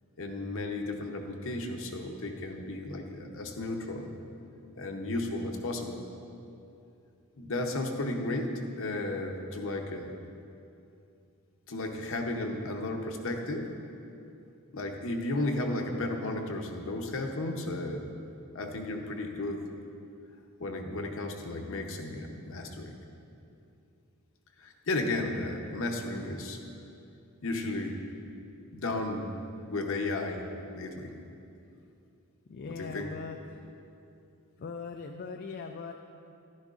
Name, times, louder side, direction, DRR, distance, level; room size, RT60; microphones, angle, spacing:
voice 1, 0.2-4.1 4.8-6.0 7.4-10.1 11.7-13.7 14.7-18.1 18.5-19.6 20.6-23.0 24.6-26.6 27.4-28.0 28.7-29.3 29.7-30.4 30.7-31.1 32.6-33.1, left 2 dB, 60° left, 3 dB, 0.8 m, -34 dB
voice 2, 32.5-33.6 34.6-35.9, left 4 dB, 45° left, 4 dB, 0.4 m, -40 dB
11.0 x 10.5 x 2.5 m, 2.7 s
head